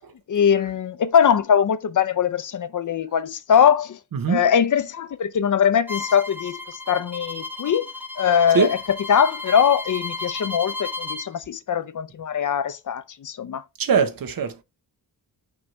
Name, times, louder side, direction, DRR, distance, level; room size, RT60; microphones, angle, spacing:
voice 1, 0.3-4.0 4.3-6.6 6.9-7.9 8.2-13.6, left 8 dB, 50° left, 0.6 m, -21 dB
Bowed string instrument, 5.9-11.3, left 3 dB, 5° right, 0.6 m, -33 dB
voice 2, 13.8-14.6, right 6 dB, 60° right, 0.9 m, -21 dB
6.1 x 5.6 x 3.1 m
wide cardioid pair, 170°, 39 cm